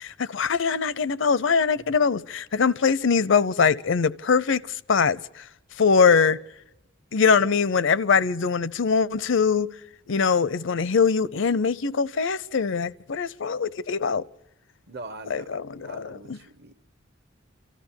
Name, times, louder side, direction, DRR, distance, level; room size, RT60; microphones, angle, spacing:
voice 1, 0.0-5.4 5.8-6.4 7.1-9.7 10.1-14.3 15.3-16.4, left 5 dB, 65° left, 0.6 m, -22 dB
voice 2, 14.9-15.5 15.8-16.7, right 2 dB, 55° right, 0.9 m, -42 dB
27.5 x 14.0 x 7.1 m
head